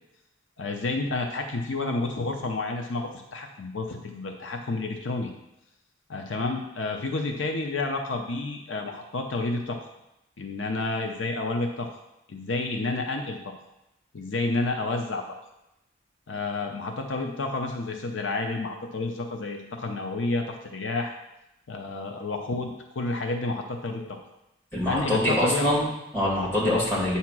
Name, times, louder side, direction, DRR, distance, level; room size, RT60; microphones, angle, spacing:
voice 1, 0.6-5.3 6.1-9.8 10.4-11.9 12.3-13.4 14.1-15.3 16.3-21.1 21.7-24.2 24.9-25.7 26.6-26.8, left 3 dB, 75° left, 3 dB, 0.7 m, -30 dB
voice 2, 24.7-27.2, left 1 dB, 10° left, -6 dB, 2.1 m, -24 dB
8.5 x 2.9 x 6.0 m, 0.89 s
head